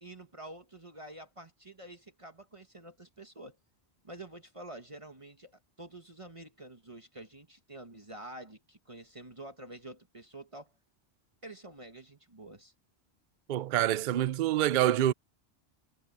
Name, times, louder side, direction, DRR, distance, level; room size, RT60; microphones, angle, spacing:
voice 1, 0.0-3.6 4.0-10.7 11.4-12.7 13.9-14.2, right 1 dB, 30° right, 1.6 m, -48 dB
voice 2, 13.5-15.1, right 12 dB, 55° right, 0.6 m, -26 dB
omnidirectional pair, 1.1 m